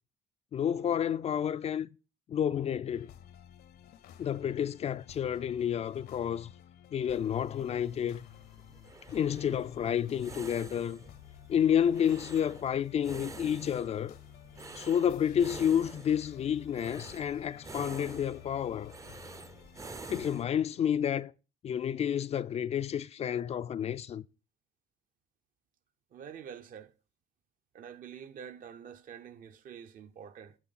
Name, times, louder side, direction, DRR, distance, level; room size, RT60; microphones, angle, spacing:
voice 1, 0.5-1.9 2.3-3.1 4.2-6.5 6.9-8.2 9.1-11.0 11.5-14.2 14.7-18.9 20.1-21.3 21.6-24.2, left 9 dB, 40° left, 0.4 m, -30 dB
sound 1, 2.9-20.3, left 11 dB, 70° left, 0.8 m, -53 dB
sound 2, 7.1-20.4, right 3 dB, 20° right, 0.5 m, -49 dB
voice 2, 26.1-26.9 27.7-30.6, right 8 dB, 55° right, 0.8 m, -47 dB
8.8 x 6.9 x 4.1 m
cardioid pair, 110°, 17 cm